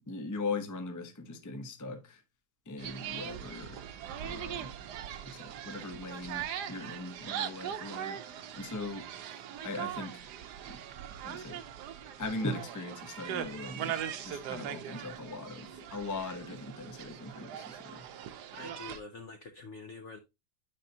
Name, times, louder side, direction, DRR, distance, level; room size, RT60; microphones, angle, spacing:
voice 1, 0.1-2.2 2.7-3.8 4.2-4.7 5.2-8.2 8.5-9.1 9.6-10.2 10.7-10.8 11.2-11.6 12.2-18.1, left 3 dB, 20° left, 0.4 m, -40 dB
sound 1, 2.8-19.0, right 9 dB, 70° right, 1.2 m, -41 dB
voice 2, 18.5-20.2, left 4 dB, 65° left, 0.7 m, -46 dB
8.9 x 5.6 x 2.7 m
omnidirectional pair, 2.1 m